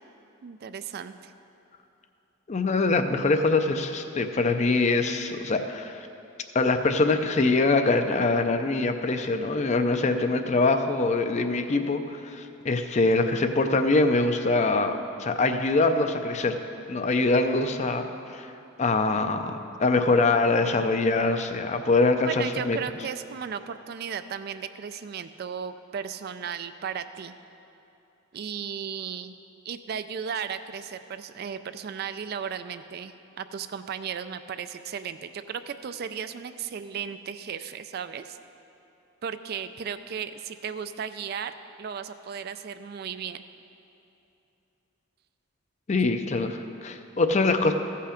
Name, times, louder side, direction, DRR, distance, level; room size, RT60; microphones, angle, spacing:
voice 1, 0.4-1.3 22.3-27.3 28.3-29.4 29.6-38.4 39.2-43.4, right 7 dB, 50° right, 11 dB, 0.3 m, -35 dB
voice 2, 2.5-6.1 6.5-16.6 16.9-18.1 18.3-18.5 18.8-19.5 19.8-22.8 45.9-47.7, left 3 dB, 35° left, 7 dB, 0.5 m, -24 dB
14.5 x 5.6 x 5.0 m, 2.9 s
head